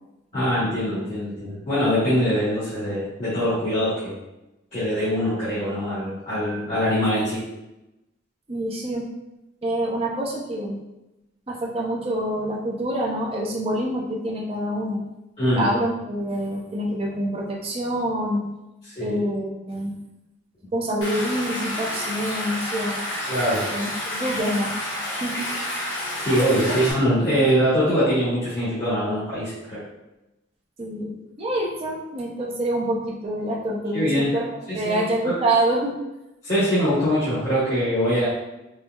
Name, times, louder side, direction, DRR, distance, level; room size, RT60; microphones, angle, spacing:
voice 1, 0.3-4.1 4.7-7.4 15.4-15.7 18.9-19.2 23.3-23.7 26.2-29.8 33.9-34.3 34.7-35.4 36.4-38.3, equal, 35° left, -13 dB, 1.2 m, -23 dB
voice 2, 8.5-9.1 9.6-10.8 11.5-15.0 15.6-18.5 19.0-20.0 20.7-23.0 23.7-24.7 25.2-25.5 26.5-26.8 30.8-31.1 31.4-34.5 34.7-35.9, right 1 dB, 30° right, -2 dB, 0.6 m, -26 dB
Stream, 21.0-26.9, left 1 dB, 70° left, 0.9 m, -29 dB
4.3 x 2.0 x 2.3 m, 0.96 s
head